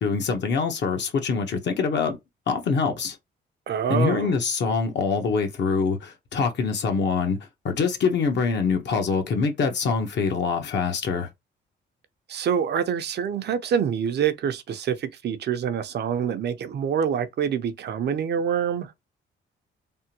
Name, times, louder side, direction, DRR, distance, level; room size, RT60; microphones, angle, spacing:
voice 1, 0.0-2.2 2.5-3.2 3.9-7.4 7.6-11.3, left 5 dB, 60° left, 1.0 m, -24 dB
voice 2, 3.7-4.3 12.3-18.9, right 8 dB, 60° right, 0.6 m, -26 dB
3.4 x 2.2 x 2.9 m
cardioid pair, 90°, 20 cm